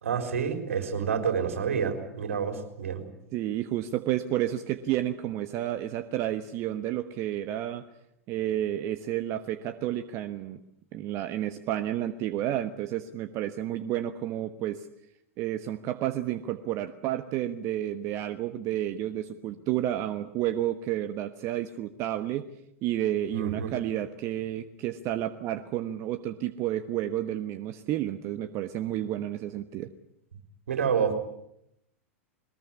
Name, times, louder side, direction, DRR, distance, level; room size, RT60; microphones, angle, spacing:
voice 1, 0.0-3.0 23.3-23.7 30.7-31.2, right 7 dB, 75° right, 7 dB, 4.2 m, -28 dB
voice 2, 3.3-7.8 8.3-10.6 10.9-14.9 15.4-22.4 22.8-29.9, right 12 dB, 40° right, 9 dB, 1.3 m, -31 dB
22.0 x 20.0 x 9.7 m, 0.78 s
hypercardioid pair, 95°, 7 cm